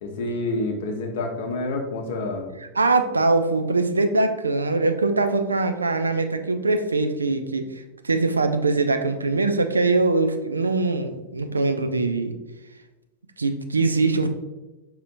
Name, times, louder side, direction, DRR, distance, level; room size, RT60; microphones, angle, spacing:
voice 1, 0.0-2.5, left 2 dB, 55° left, 3 dB, 0.7 m, -28 dB
voice 2, 2.8-7.6 8.0-12.3 13.4-14.3, right 3 dB, 75° right, 7 dB, 0.3 m, -22 dB
5.2 x 2.8 x 2.5 m, 1.1 s
figure-of-eight pair, 90°, 0 cm